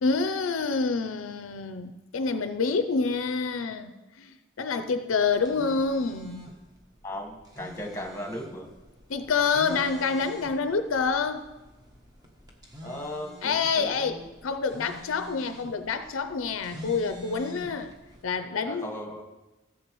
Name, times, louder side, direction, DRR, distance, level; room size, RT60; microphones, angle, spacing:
voice 1, 0.0-3.9 4.2-6.5 9.1-11.5 13.4-17.9 18.2-18.9, left 4 dB, 75° left, 10 dB, 0.5 m, -27 dB
sound 1, 5.3-18.2, left 2 dB, 20° right, 1.1 m, -46 dB
voice 2, 7.0-8.7 12.8-14.3 18.6-19.2, left 1 dB, 15° left, 1 dB, 1.3 m, -37 dB
15.0 x 7.3 x 3.1 m, 1.1 s
head